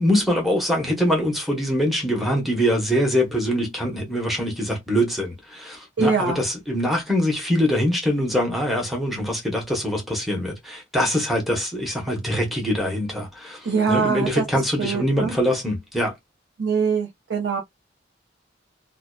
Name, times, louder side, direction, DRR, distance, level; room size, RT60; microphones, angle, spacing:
voice 1, 0.0-16.1, equal, ahead, 0.9 m, -23 dB
voice 2, 6.0-6.4 13.6-15.3 16.6-17.6, right 5 dB, 70° right, 0.6 m, -23 dB
2.7 x 2.1 x 2.2 m
head